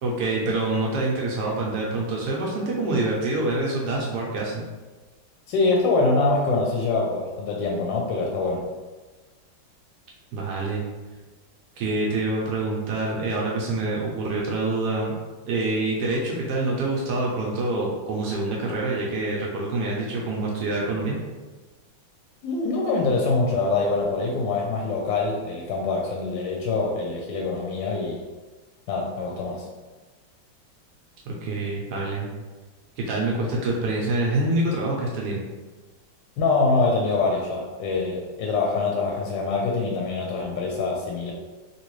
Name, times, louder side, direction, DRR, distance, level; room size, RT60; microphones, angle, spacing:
voice 1, 0.0-4.6 10.3-10.8 11.8-15.1 15.5-21.1 31.3-32.3 33.0-35.4, right 2 dB, 70° right, -3 dB, 1.0 m, -26 dB
voice 2, 5.5-8.6 22.4-28.2 28.9-29.6 36.4-41.3, left 3 dB, 75° left, -1 dB, 1.2 m, -24 dB
3.0 x 2.8 x 3.0 m, 1.3 s
omnidirectional pair, 2.1 m